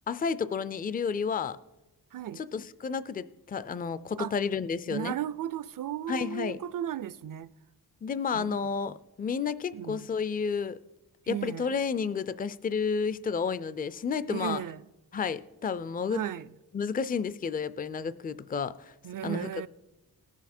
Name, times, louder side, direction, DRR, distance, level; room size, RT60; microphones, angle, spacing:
voice 1, 0.1-1.6 2.4-5.1 6.1-6.6 8.0-10.8 11.3-14.6 15.1-16.2 16.7-18.9 19.2-19.7, left 6 dB, 25° left, 0.4 m, -31 dB
voice 2, 2.1-2.4 4.2-4.3 4.9-7.5 8.3-8.6 9.7-10.1 11.3-11.7 14.3-14.8 16.1-16.5 19.0-19.7, right 10 dB, 55° right, 0.5 m, -35 dB
19.0 x 7.3 x 4.3 m
wide cardioid pair, 115°, 39 cm